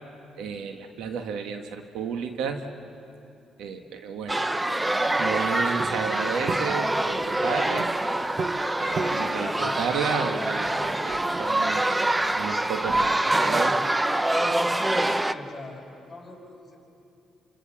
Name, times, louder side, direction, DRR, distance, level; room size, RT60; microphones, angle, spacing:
voice 1, 0.4-2.6 3.6-4.4 5.2-7.9 8.8-12.0 12.3-13.8, right 6 dB, 90° right, 6 dB, 1.5 m, -32 dB
sound 1, 4.3-15.3, right 1 dB, 15° right, 0.7 m, -25 dB
sound 2, 5.1-13.3, right 4 dB, 45° right, 1.1 m, -38 dB
voice 2, 8.9-9.9 14.7-16.8, left 2 dB, 15° left, -2 dB, 6.0 m, -40 dB
28.0 x 26.5 x 7.5 m, 2.7 s
cardioid pair, 90°, 0 cm